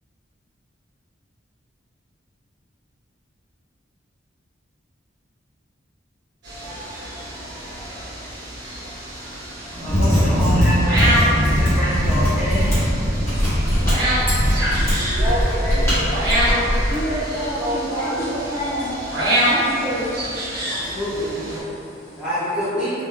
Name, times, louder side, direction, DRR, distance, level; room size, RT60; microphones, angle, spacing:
sound 1, 6.4-21.6, right 1 dB, 60° right, 0.9 m, -26 dB
voice 1, 9.7-11.2 11.5-12.8 20.7-21.4 22.2-22.9, equal, 5° right, -14 dB, 0.7 m, -26 dB
Mechanisms, 9.8-17.0, equal, 15° left, 1.0 m, -19 dB
voice 2, 14.8-18.3 19.3-19.5 20.5-21.0 21.6-22.2, equal, 80° left, -12 dB, 1.3 m, -30 dB
voice 3, 16.9-18.9 19.4-20.0, right 1 dB, 60° left, -11 dB, 1.0 m, -27 dB
2.8 x 2.7 x 2.2 m, 2.8 s
head